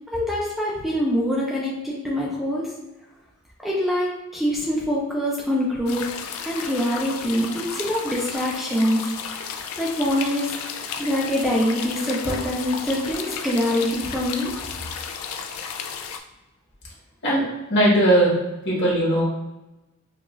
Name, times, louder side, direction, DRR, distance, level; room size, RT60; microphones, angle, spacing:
voice 1, 0.1-2.7 3.6-6.1 6.4-10.5 11.0-14.5, equal, ahead, -5 dB, 0.4 m, -24 dB
sound 1, 5.9-16.2, left 6 dB, 90° left, 0.4 m, -33 dB
voice 2, 17.2-18.3 18.6-19.2, right 1 dB, 55° left, -5 dB, 1.3 m, -19 dB
4.7 x 2.4 x 2.5 m, 1.0 s
head